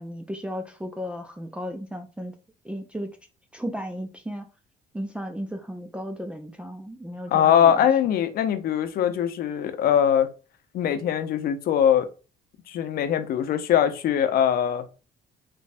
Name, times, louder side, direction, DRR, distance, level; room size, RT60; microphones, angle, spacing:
voice 1, 0.0-2.4 2.6-3.2 3.5-4.5 4.9-7.9, equal, 5° right, 0.4 m, -35 dB
voice 2, 7.3-10.3 10.7-12.1 12.7-14.9, left 9 dB, 60° left, 0.7 m, -22 dB
3.4 x 3.3 x 2.5 m
cardioid pair, 110°, 17 cm